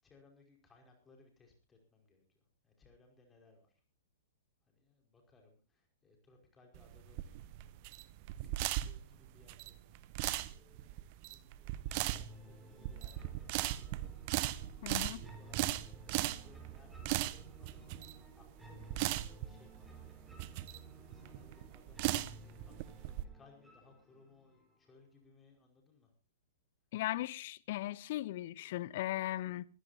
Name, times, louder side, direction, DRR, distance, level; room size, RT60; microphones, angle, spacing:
voice 1, 0.0-3.8 4.6-7.4 8.7-20.1 20.4-26.1, left 3 dB, 15° left, 5.1 m, -65 dB
sound 1, 6.7-23.2, right 16 dB, 40° right, 0.9 m, -38 dB
sound 2, 11.9-24.9, right 2 dB, 5° right, 3.9 m, -55 dB
voice 2, 14.8-15.2 26.9-29.7, left 15 dB, 50° left, 0.9 m, -37 dB
24.5 x 16.0 x 2.8 m
figure-of-eight pair, 105°, 0 cm